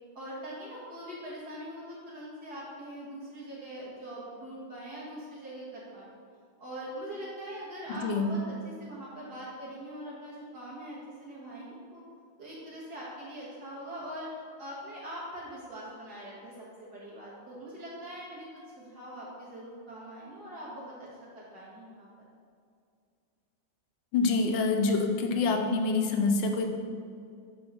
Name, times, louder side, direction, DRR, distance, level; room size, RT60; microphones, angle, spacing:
voice 1, 0.2-6.1 6.6-12.0 12.4-14.3 14.6-18.5 18.8-21.1 21.3-22.1, equal, 60° right, -7 dB, 2.2 m, -42 dB
voice 2, 7.9-8.3 24.1-26.7, left 3 dB, 85° left, 4 dB, 1.5 m, -26 dB
9.0 x 3.7 x 5.7 m, 2.3 s
omnidirectional pair, 2.0 m